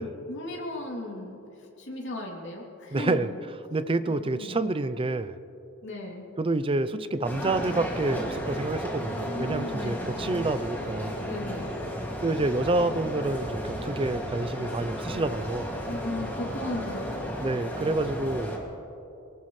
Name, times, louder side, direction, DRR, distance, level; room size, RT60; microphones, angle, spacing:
voice 1, 0.0-1.4 1.8-3.2 4.1-4.6 5.8-6.3 9.2-10.1 11.2-11.8 15.9-17.4, left 1 dB, 55° left, -2 dB, 3.0 m, -36 dB
voice 2, 2.9-3.3 3.7-5.4 6.4-11.2 12.2-15.7 17.4-18.6, right 2 dB, 25° right, 12 dB, 0.5 m, -28 dB
sound 1, 7.2-18.6, equal, 10° left, 2.3 m, -33 dB
23.5 x 18.5 x 3.2 m, 2.9 s
head